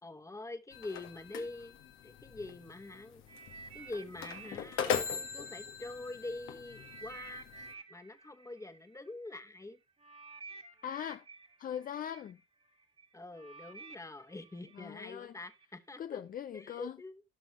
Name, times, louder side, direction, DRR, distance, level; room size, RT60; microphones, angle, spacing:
voice 1, 0.0-3.4 3.7-5.1 5.3-7.5 7.9-9.8 13.1-16.2 16.5-17.2, left 2 dB, 15° left, 1.3 m, -45 dB
sound 1, 0.7-7.7, left 7 dB, 85° left, 1.7 m, -40 dB
sound 2, 3.3-6.2 6.7-15.6 16.4-16.5, right 4 dB, 30° right, 1.8 m, -53 dB
voice 2, 10.8-11.3 11.6-12.4 14.7-15.3 16.0-17.0, left 9 dB, 45° left, 0.4 m, -40 dB
16.5 x 6.1 x 3.1 m
cardioid pair, 90°, 20 cm